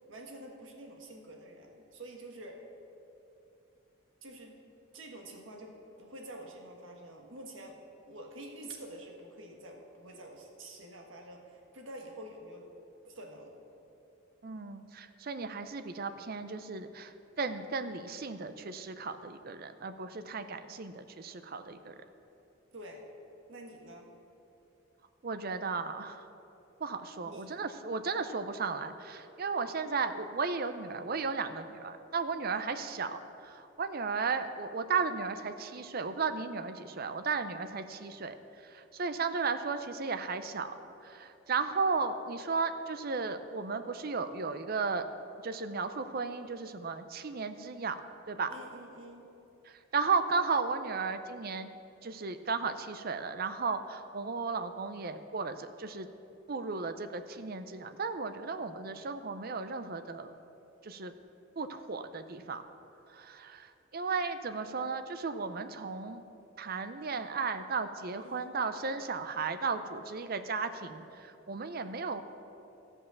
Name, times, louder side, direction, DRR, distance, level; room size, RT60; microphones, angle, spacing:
voice 1, 0.1-2.6 4.2-4.6 4.9-7.8 8.1-12.7 13.0-13.6 22.7-23.0 23.5-24.1 27.2-27.5 48.5-49.3 68.2-68.5, right 1 dB, 70° right, 1 dB, 1.5 m, -48 dB
voice 2, 14.4-21.9 25.2-26.2 26.8-40.7 41.0-45.0 45.4-48.0 48.3-48.5 49.7-51.7 52.0-56.1 56.5-60.3 60.8-61.1 61.6-62.6 63.1-66.2 66.6-72.2, right 4 dB, 45° right, 10 dB, 0.5 m, -35 dB
14.5 x 5.4 x 7.0 m, 2.9 s
head